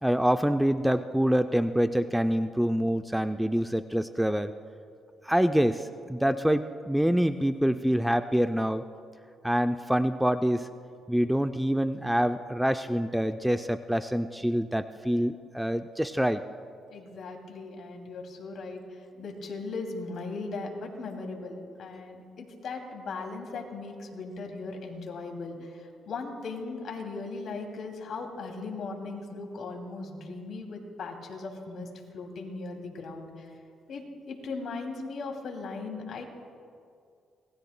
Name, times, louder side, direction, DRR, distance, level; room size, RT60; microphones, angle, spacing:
voice 1, 0.0-4.5 5.3-8.8 9.4-10.7 11.1-16.4, equal, 5° right, 9 dB, 0.4 m, -26 dB
voice 2, 16.9-18.8 19.2-31.9 32.1-33.5 33.9-36.2, left 3 dB, 65° left, 2 dB, 2.6 m, -38 dB
26.0 x 19.0 x 2.2 m, 2.3 s
cardioid pair, 90°, 0 cm